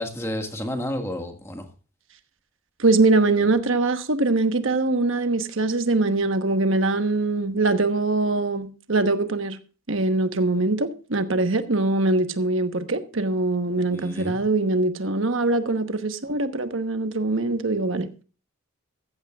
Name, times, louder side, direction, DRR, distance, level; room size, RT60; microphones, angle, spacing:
voice 1, 0.0-1.7 13.9-14.4, left 1 dB, 10° left, 1.7 m, -31 dB
voice 2, 2.8-9.6 9.9-18.1, right 2 dB, 65° right, 1.1 m, -23 dB
15.0 x 14.5 x 2.4 m
head